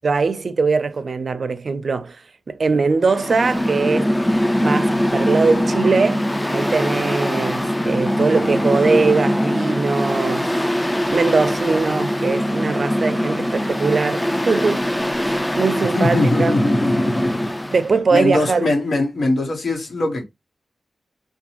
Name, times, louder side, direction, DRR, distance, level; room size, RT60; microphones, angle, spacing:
voice 1, 0.0-2.2 2.5-4.2 4.6-6.2 6.5-10.5 11.1-14.9 15.2-16.5 17.7-18.7, right 4 dB, 60° right, 0.4 m, -21 dB
Mechanical fan, 3.0-17.9, equal, 10° left, 0.4 m, -22 dB
voice 2, 15.9-17.5 18.1-20.3, left 2 dB, 65° left, 1.1 m, -21 dB
2.6 x 2.2 x 2.9 m
wide cardioid pair, 85°, 0 cm